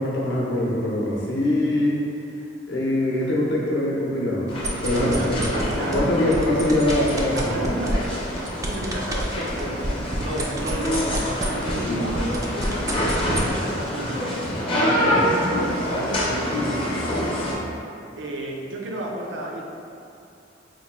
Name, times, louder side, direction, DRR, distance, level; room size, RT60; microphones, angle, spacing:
voice 1, 0.0-2.0 2.7-4.5 4.8-5.4 5.8-7.5 15.0-15.2, left 1 dB, 65° left, -4 dB, 0.7 m, -23 dB
sound 1, 4.5-17.5, equal, 30° left, 0.6 m, -26 dB
sound 2, 4.5-6.0 6.3-11.8 12.1-13.5, right 1 dB, 20° right, 0.3 m, -29 dB
voice 2, 5.1-6.1 7.3-8.2 8.6-17.7 18.1-19.6, right 1 dB, 75° right, -1 dB, 0.5 m, -33 dB
4.5 x 2.2 x 2.9 m, 2.6 s
head